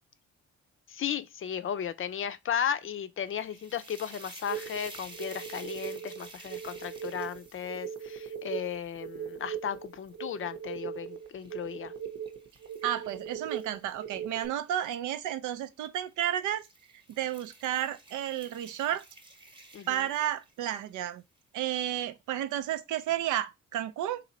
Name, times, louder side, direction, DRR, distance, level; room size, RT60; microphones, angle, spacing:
voice 1, 0.9-11.9 19.7-20.1, left 8 dB, 45° left, 0.5 m, -35 dB
sound 1, 3.2-10.4 11.0-14.9 15.8-16.1 16.5-20.7, right 2 dB, 15° right, 1.0 m, -52 dB
sound 2, 4.5-14.5, right 8 dB, 50° right, 0.8 m, -39 dB
voice 2, 12.8-16.6 17.2-19.0 19.9-21.2 21.5-24.2, right 11 dB, 80° right, 0.6 m, -32 dB
3.1 x 2.8 x 3.9 m
cardioid pair, 90°, 30 cm